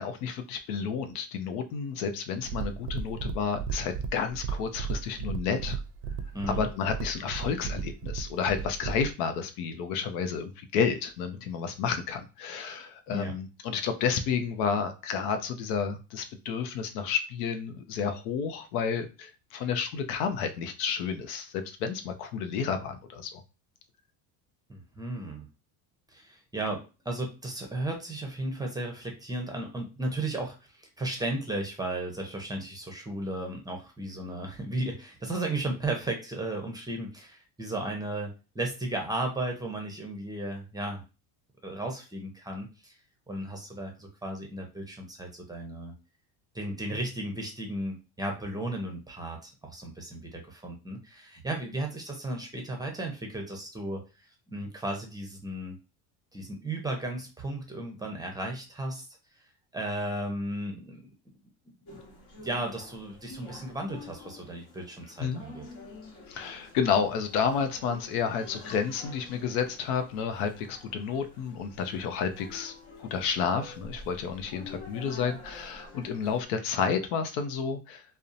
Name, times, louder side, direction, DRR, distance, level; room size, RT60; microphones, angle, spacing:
voice 1, 0.0-5.8 6.5-23.4 65.2-65.4 66.3-72.7 73.0-78.0, left 6 dB, 90° left, 8 dB, 0.6 m, -31 dB
sound 1, 2.4-9.1, right 6 dB, 55° right, 0.5 m, -35 dB
voice 2, 6.3-6.7 13.1-13.3 24.7-25.5 26.1-41.0 41.6-42.9 43.3-45.9 46.5-55.8 56.3-59.1 59.7-61.1 61.6-62.0 62.4-65.7, right 1 dB, 10° right, 2 dB, 0.6 m, -35 dB
sound 2, 61.9-76.4, left 2 dB, 60° left, 1.0 m, -48 dB
2.7 x 2.1 x 2.4 m, 0.31 s
supercardioid pair, 100°, 45 cm